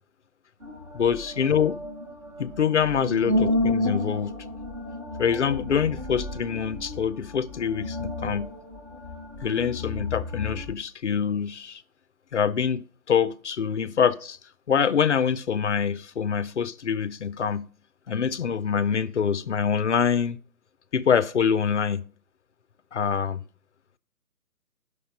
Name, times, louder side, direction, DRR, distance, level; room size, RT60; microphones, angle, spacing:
sound 1, 0.6-10.7, left 1 dB, 20° right, 0.7 m, -31 dB
voice 1, 0.9-1.8 2.4-4.4 5.2-8.5 9.4-11.8 12.3-14.4 14.7-17.7 18.1-20.4 20.9-22.0 22.9-23.4, left 7 dB, 50° left, 0.6 m, -25 dB
10.0 x 6.7 x 5.2 m
hypercardioid pair, 155°, 47 cm